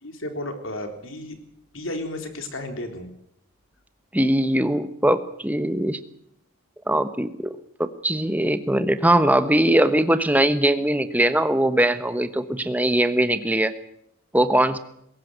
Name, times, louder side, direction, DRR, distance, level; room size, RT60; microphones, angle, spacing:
voice 1, 0.0-1.4 1.7-3.1, left 1 dB, 70° left, 6 dB, 3.9 m, -33 dB
voice 2, 4.1-6.0 6.9-13.7 14.3-14.8, right 1 dB, 10° right, 11 dB, 1.2 m, -21 dB
21.0 x 17.0 x 8.1 m, 0.72 s
head